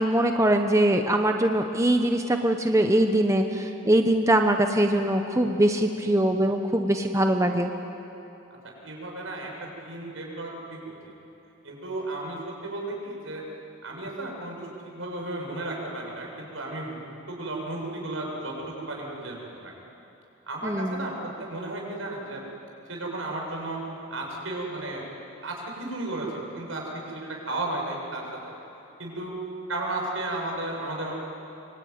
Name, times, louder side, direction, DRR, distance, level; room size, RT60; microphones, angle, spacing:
voice 1, 0.0-7.7 20.6-21.0, right 1 dB, 15° right, 5 dB, 1.0 m, -22 dB
voice 2, 8.8-11.2 11.6-13.4 13.8-19.7 20.5-22.4 22.9-23.8 24.1-25.0 25.4-28.6 29.0-29.4 29.7-31.1, right 2 dB, 75° right, -1 dB, 7.1 m, -34 dB
25.0 x 25.0 x 9.6 m, 3.0 s
head